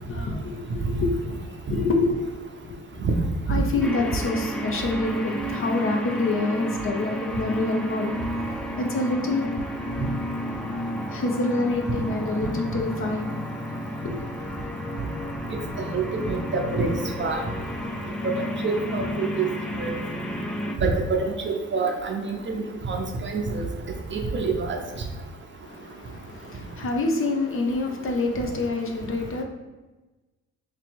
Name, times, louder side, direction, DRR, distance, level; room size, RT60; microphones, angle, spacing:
voice 1, 0.1-1.3 1.7-2.8 3.5-8.1 8.8-9.5 11.1-13.3 14.0-14.2 25.6-29.4, left 2 dB, 45° left, 2 dB, 0.7 m, -27 dB
sound 1, 3.8-20.8, equal, 5° left, 0.3 m, -32 dB
voice 2, 15.9-16.9 17.2-17.4 18.6-19.5 19.8-19.9 20.8-23.7 24.1-24.8, right 4 dB, 40° right, 3 dB, 0.6 m, -26 dB
2.9 x 2.8 x 4.4 m, 1.1 s
cardioid pair, 90°, 30 cm